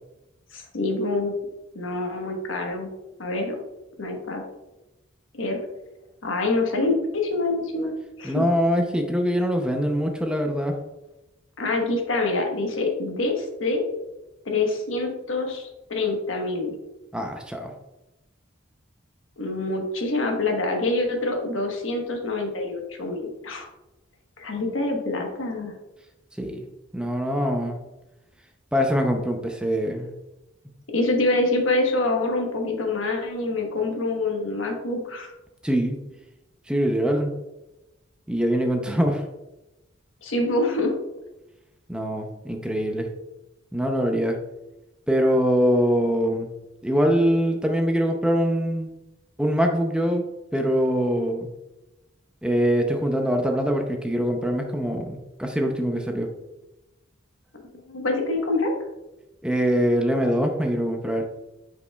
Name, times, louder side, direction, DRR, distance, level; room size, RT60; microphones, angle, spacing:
voice 1, 0.5-1.3 1.7-2.9 3.2-3.6 4.0-4.4 5.3-5.6 6.2-7.9 8.2-8.4 11.6-13.8 14.4-16.7 19.4-23.7 24.4-25.8 30.9-35.3 40.2-40.9 57.9-58.7, left 2 dB, 80° left, 2 dB, 1.2 m, -26 dB
voice 2, 8.2-10.7 17.1-17.7 26.4-26.6 26.9-27.8 28.7-30.1 35.6-36.0 36.7-37.4 38.3-39.3 41.9-43.1 43.7-44.4 45.1-46.5 46.8-48.9 49.4-50.2 50.5-51.5 52.4-56.3 59.4-61.3, equal, 5° right, 3 dB, 0.5 m, -23 dB
8.1 x 5.1 x 2.3 m, 0.98 s
head